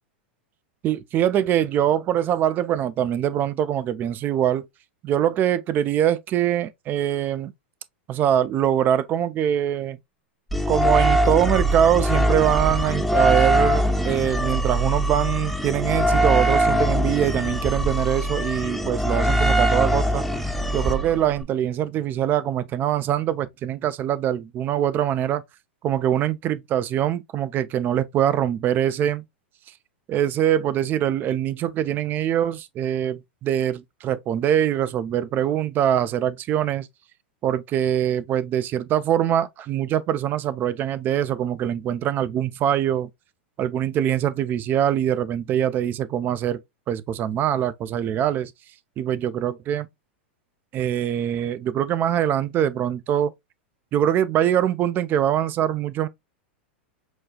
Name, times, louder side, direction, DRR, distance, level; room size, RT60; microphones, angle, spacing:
voice 1, 0.8-4.7 5.0-7.5 8.1-10.0 10.7-20.2 20.7-25.4 25.8-29.2 30.1-36.9 37.4-43.1 43.6-46.6 46.9-48.5 49.0-49.9 50.7-53.3 53.9-56.1, right 10 dB, 35° right, 0.4 m, -23 dB
sound 1, 10.5-21.4, right 1 dB, ahead, 0.7 m, -22 dB
6.1 x 2.3 x 2.2 m
hypercardioid pair, 100°, 6 cm